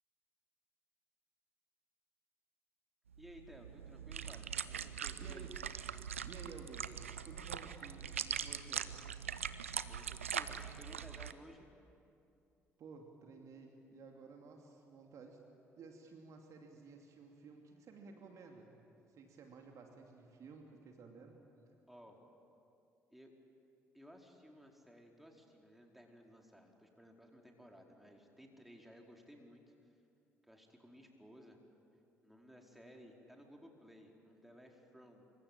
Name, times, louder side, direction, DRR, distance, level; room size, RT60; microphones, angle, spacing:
sound 1, 3.1-11.3, right 8 dB, 80° right, 0.6 m, -42 dB
voice 1, 3.2-5.5 9.9-11.7 21.9-22.2 23.1-23.3 23.9-29.9 30.4-31.6 32.2-35.3, equal, ahead, 1 dB, 4.6 m, -58 dB
voice 2, 5.2-5.6 6.2-8.9 12.8-15.4 15.8-18.8 19.1-21.4, right 4 dB, 50° right, 2 dB, 2.7 m, -54 dB
26.5 x 24.5 x 8.9 m, 2.6 s
figure-of-eight pair, 45°, 7 cm